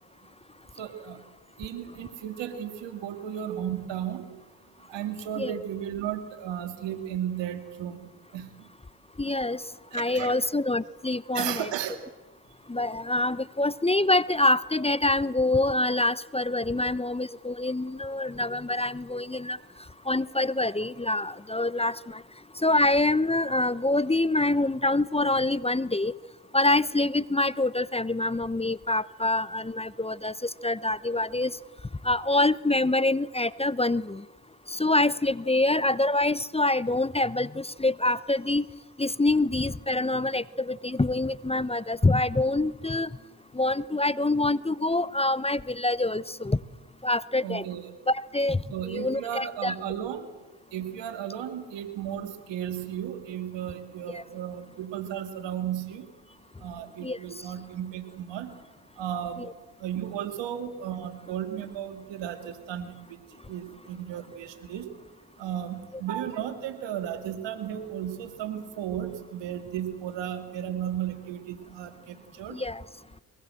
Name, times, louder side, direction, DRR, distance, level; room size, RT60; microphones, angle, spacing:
voice 1, 0.8-1.2 1.6-4.3 4.9-8.0 8.3-8.7 9.9-10.4 11.3-12.0 20.5-20.6 47.4-47.9 48.7-50.3 50.7-56.1 56.6-58.5 59.0-59.5 59.8-63.2 63.5-64.9 65.4-72.6, right 10 dB, 90° right, 8 dB, 2.4 m, -34 dB
voice 2, 9.2-9.6 9.9-11.7 12.7-19.6 20.1-22.2 22.6-26.1 26.5-31.5 32.0-34.2 34.7-38.7 39.0-43.1 43.5-46.6 47.0-47.6 48.3-49.7 54.1-54.2 57.0-57.2 59.4-59.5 72.5-72.8, left 2 dB, 15° left, 18 dB, 0.8 m, -26 dB
22.5 x 21.0 x 7.7 m, 1.2 s
supercardioid pair, 45°, 42 cm